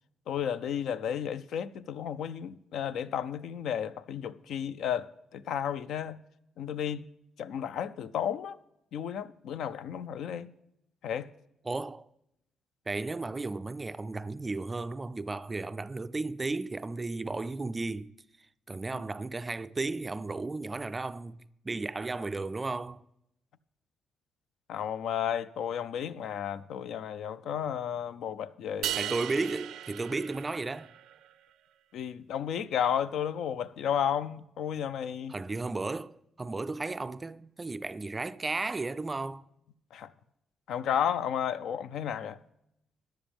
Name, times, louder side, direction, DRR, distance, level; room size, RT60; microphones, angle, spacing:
voice 1, 0.3-6.2 6.6-7.1 7.4-8.6 8.9-10.5 11.0-11.3 24.7-29.1 31.9-35.3 39.9-40.1 40.7-42.4, left 9 dB, 75° left, 0.5 m, -33 dB
voice 2, 11.7-12.1 12.9-18.2 18.7-23.0 28.9-30.9 35.3-39.4, right 3 dB, 20° right, 0.3 m, -34 dB
sound 1, 28.8-31.1, right 12 dB, 85° right, 0.5 m, -36 dB
14.5 x 10.5 x 3.5 m
cardioid pair, 130°, 0 cm